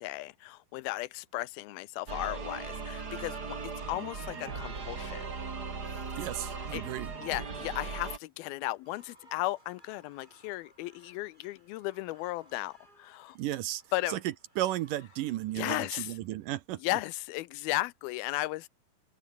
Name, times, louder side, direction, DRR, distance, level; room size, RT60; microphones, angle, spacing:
voice 1, 0.0-3.6 3.9-5.2 6.2-6.3 6.7-6.8 7.2-13.4 13.9-14.2 15.6-16.1 16.8-18.7, left 18 dB, 80° left, 2.5 m, -35 dB
sound 1, 2.1-8.2, right 4 dB, 30° right, 2.7 m, -38 dB
voice 2, 6.2-7.1 13.4-13.8 14.1-14.2 14.6-16.8, right 14 dB, 75° right, 2.2 m, -34 dB
sound 2, 8.7-16.8, right 1 dB, 10° right, 7.4 m, -63 dB
open air
omnidirectional pair, 4.4 m